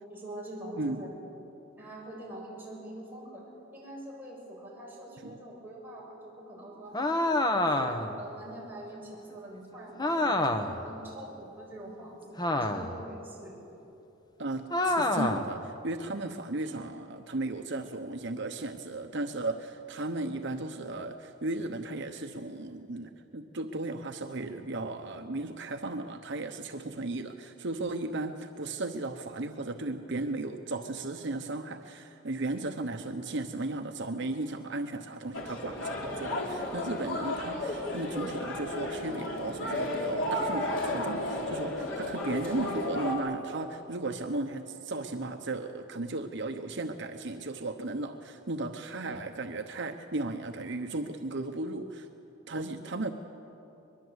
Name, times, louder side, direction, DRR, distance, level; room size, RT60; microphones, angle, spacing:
voice 1, 0.1-1.1 1.8-7.0 7.3-10.5 10.8-12.3 12.6-13.6 52.4-52.6, right 1 dB, 10° right, -4 dB, 7.1 m, -44 dB
voice 2, 0.8-1.1 14.4-52.1 52.5-53.1, right 2 dB, 65° right, 5 dB, 1.0 m, -35 dB
sound 1, 6.9-8.2 10.0-10.8 12.4-13.0 14.7-15.5, left 1 dB, 20° left, 1.2 m, -27 dB
sound 2, 35.3-43.2, left 1 dB, 75° left, 3.6 m, -33 dB
23.5 x 22.0 x 8.2 m, 3.0 s
head